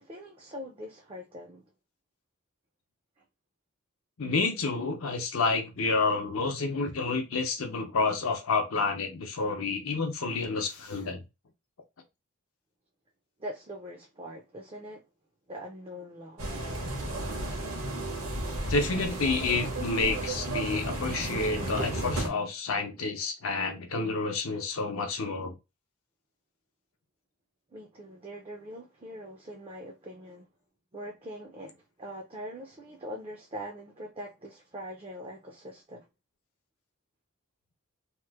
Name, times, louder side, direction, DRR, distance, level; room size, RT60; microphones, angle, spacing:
voice 1, 0.0-1.6 13.4-15.0 15.5-16.6 27.7-30.5 30.9-36.1, equal, 25° right, 0.4 m, -42 dB
voice 2, 4.2-11.2 18.7-25.5, left 3 dB, 70° left, 0.6 m, -29 dB
sound 1, 16.4-22.3, right 1 dB, 75° right, 1.1 m, -33 dB
2.9 x 2.0 x 3.4 m
head